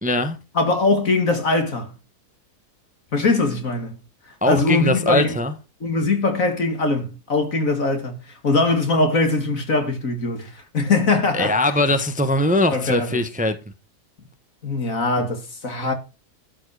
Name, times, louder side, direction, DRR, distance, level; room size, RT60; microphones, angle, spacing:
voice 1, 0.0-0.4 4.4-5.5 11.3-13.5, left 1 dB, 5° right, 1.2 m, -21 dB
voice 2, 0.5-1.9 3.1-4.0 4.4-5.4 5.8-11.5 12.7-13.3 14.6-15.9, left 3 dB, 55° left, 2.8 m, -21 dB
13.0 x 7.5 x 5.0 m
omnidirectional pair, 1.7 m